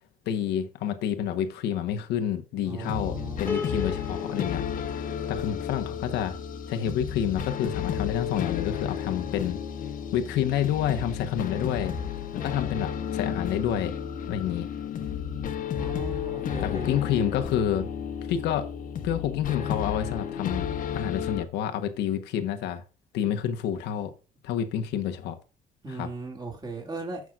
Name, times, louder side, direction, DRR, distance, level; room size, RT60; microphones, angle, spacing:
voice 1, 0.3-6.4 6.7-9.6 10.1-11.9 12.3-13.9 14.3-14.7 16.6-17.9 18.3-18.7 19.0-20.7 20.9-22.8 23.1-24.1 24.4-25.4 25.9-26.1, left 9 dB, 85° left, 1.2 m, -29 dB
voice 2, 2.6-3.9 15.8-16.9 25.8-27.2, right 3 dB, 25° right, 2.6 m, -38 dB
sound 1, 2.8-21.4, left 8 dB, 55° left, 1.2 m, -32 dB
Piano, 3.5-6.7, left 4 dB, 10° left, 1.2 m, -37 dB
15.5 x 6.0 x 2.5 m
cardioid pair, 110°, 17 cm